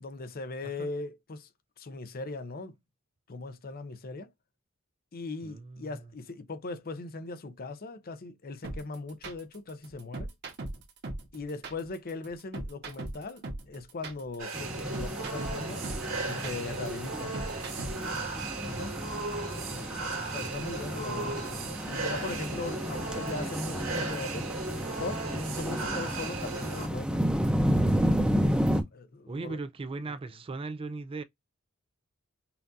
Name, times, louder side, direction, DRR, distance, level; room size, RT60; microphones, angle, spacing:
voice 1, 0.0-1.5 1.8-2.7 3.3-4.3 5.1-10.3 11.3-15.9 16.2-17.4 18.6-18.9 19.7-21.4 21.9-24.5 24.9-27.3 28.6-29.6, left 3 dB, 45° left, 0.6 m, -39 dB
voice 2, 5.4-5.9 29.3-31.2, right 3 dB, 25° right, 0.3 m, -38 dB
sound 1, 8.6-18.2, right 2 dB, 50° right, 1.3 m, -39 dB
sound 2, 14.4-26.9, right 3 dB, 70° right, 1.9 m, -37 dB
sound 3, 14.5-28.8, equal, 5° right, 0.7 m, -32 dB
5.7 x 2.5 x 2.6 m
head